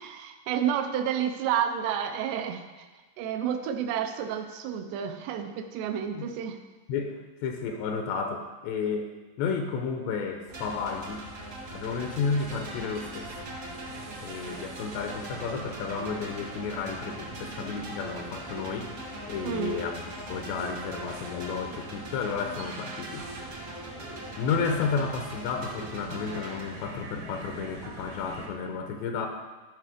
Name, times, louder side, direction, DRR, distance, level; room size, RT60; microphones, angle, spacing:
voice 1, 0.0-2.9 3.2-6.6 19.4-19.9, right 9 dB, 80° right, 6 dB, 2.7 m, -30 dB
voice 2, 6.9-9.1 9.4-11.3 11.7-13.4 14.2-18.9 19.3-23.6 24.4-29.3, left 5 dB, 85° left, 4 dB, 2.9 m, -32 dB
sound 1, 10.5-26.6, right 1 dB, 45° right, 1.0 m, -42 dB
sound 2, 10.5-28.5, right 2 dB, 65° right, 1.9 m, -44 dB
14.0 x 5.8 x 4.9 m, 1.3 s
omnidirectional pair, 5.1 m